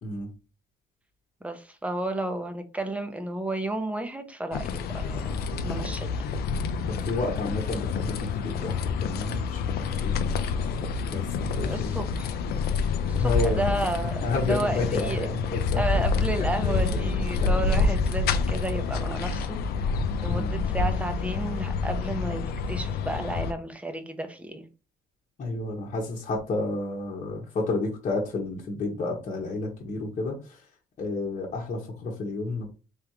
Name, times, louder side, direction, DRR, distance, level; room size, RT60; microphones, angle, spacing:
voice 1, 1.4-6.1 11.6-12.4 13.1-19.6 20.2-24.7, right 1 dB, 10° right, 0.7 m, -32 dB
sound 1, 4.5-23.5, left 4 dB, 65° left, 0.5 m, -28 dB
voice 2, 7.1-10.7 11.1-11.9 13.2-13.6 14.2-15.4 15.7-15.8 16.6-16.7 17.4-17.7 20.3-20.6 25.4-30.3 31.0-32.7, left 3 dB, 45° left, 1.1 m, -30 dB
3.6 x 3.5 x 3.0 m
cardioid pair, 110°, 17 cm